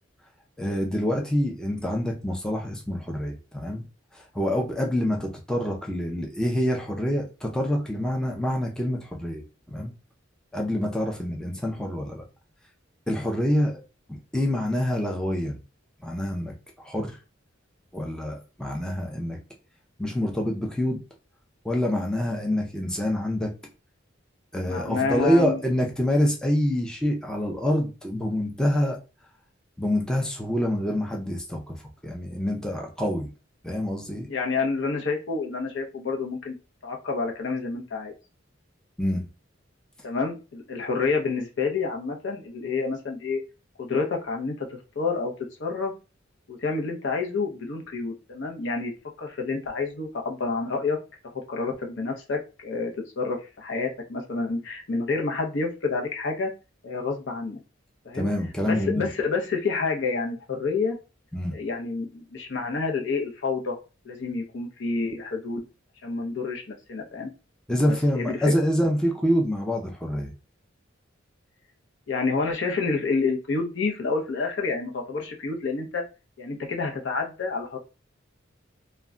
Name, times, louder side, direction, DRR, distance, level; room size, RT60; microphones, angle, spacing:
voice 1, 0.6-3.8 4.1-9.4 9.7-9.9 10.5-12.2 13.1-13.8 14.3-15.6 16.0-17.1 17.9-19.4 20.0-21.0 21.6-23.5 24.5-29.0 29.8-31.8 32.0-33.3 33.6-34.3 39.0-39.2 58.1-59.1 61.3-61.5 67.7-70.3, equal, 5° left, 0 dB, 0.4 m, -26 dB
voice 2, 24.6-25.6 34.3-36.5 36.8-38.1 40.0-43.4 43.8-45.3 45.6-45.9 46.5-48.9 49.2-51.0 51.5-56.5 56.8-57.6 58.0-58.3 58.6-61.0 61.5-63.8 64.0-65.6 66.0-67.3 67.8-68.5 72.1-76.0 76.4-77.8, left 4 dB, 65° left, 1 dB, 0.6 m, -28 dB
2.2 x 2.1 x 3.6 m, 0.31 s
head